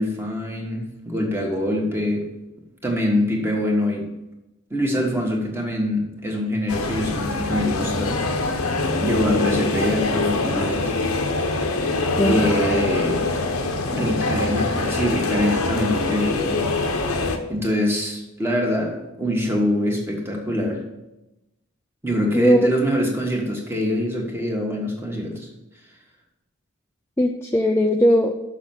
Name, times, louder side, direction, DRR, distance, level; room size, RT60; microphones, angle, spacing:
voice 1, 0.0-2.2 2.8-4.0 4.7-8.2 8.5-8.6 9.0-10.9 12.2-13.2 13.9-16.6 17.5-20.8 22.0-25.5, left 1 dB, 10° right, 0 dB, 1.5 m, -24 dB
sound 1, 6.7-17.4, left 3 dB, 85° left, 0.9 m, -24 dB
voice 2, 12.2-12.6 22.3-22.8 27.2-28.4, equal, 10° left, 2 dB, 0.4 m, -19 dB
6.5 x 6.2 x 7.3 m, 0.96 s
head